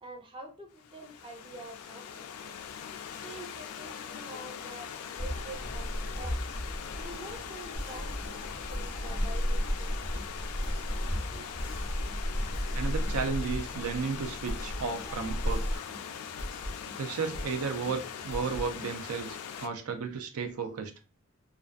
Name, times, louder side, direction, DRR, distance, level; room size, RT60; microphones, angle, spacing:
voice 1, 0.0-2.6 3.2-6.4 6.9-10.1 11.3-11.5, right 2 dB, 25° right, 0.4 m, -47 dB
Stream / Liquid, 0.8-19.7, left 8 dB, 90° left, 0.3 m, -41 dB
sound 1, 5.2-15.8, equal, 45° right, 1.1 m, -34 dB
sound 2, 7.7-19.3, equal, 70° right, 1.0 m, -43 dB
voice 2, 12.7-15.8 17.0-20.9, right 5 dB, 90° right, 0.4 m, -34 dB
2.5 x 2.2 x 2.4 m
head